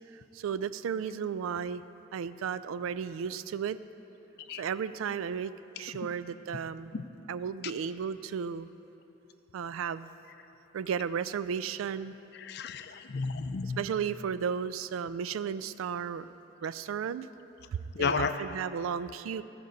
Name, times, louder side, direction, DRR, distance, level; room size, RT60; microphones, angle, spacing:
voice 1, 0.1-1.8 2.1-3.8 4.5-5.5 5.8-6.9 7.3-8.7 9.5-10.1 10.7-12.1 13.8-16.3 16.6-17.3 18.0-19.4, right 7 dB, 85° right, 14 dB, 0.3 m, -34 dB
voice 2, 12.4-13.8 17.9-18.3, left 5 dB, 55° left, 10 dB, 0.4 m, -32 dB
15.0 x 5.2 x 5.2 m, 2.9 s
head